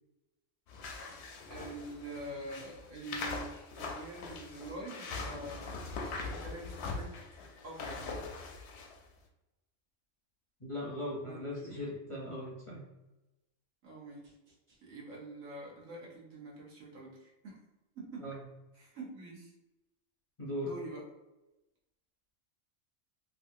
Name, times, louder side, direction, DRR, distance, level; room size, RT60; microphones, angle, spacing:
sound 1, 0.7-9.0, left 3 dB, 65° left, 0.8 m, -42 dB
voice 1, 1.5-3.5 3.8-5.7 6.3-7.1 7.6-8.0 11.3-11.8 13.8-17.6 17.9-18.3 18.7-19.5 20.6-21.1, right 2 dB, 75° right, -3 dB, 1.3 m, -46 dB
voice 2, 10.6-12.8 18.2-18.4 20.4-20.7, left 1 dB, 35° left, -5 dB, 0.6 m, -39 dB
3.0 x 2.5 x 2.6 m, 0.98 s
omnidirectional pair, 1.3 m